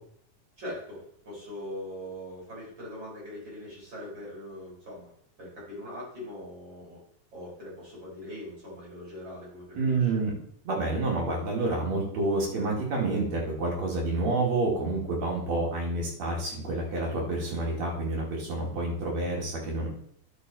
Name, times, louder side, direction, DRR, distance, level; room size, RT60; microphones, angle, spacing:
voice 1, 0.6-7.0 7.3-10.2, left 1 dB, 35° right, -5 dB, 5.3 m, -41 dB
voice 2, 9.8-10.3 10.6-19.9, right 2 dB, 60° right, -2 dB, 3.6 m, -28 dB
10.5 x 6.6 x 4.2 m, 0.67 s
omnidirectional pair, 3.7 m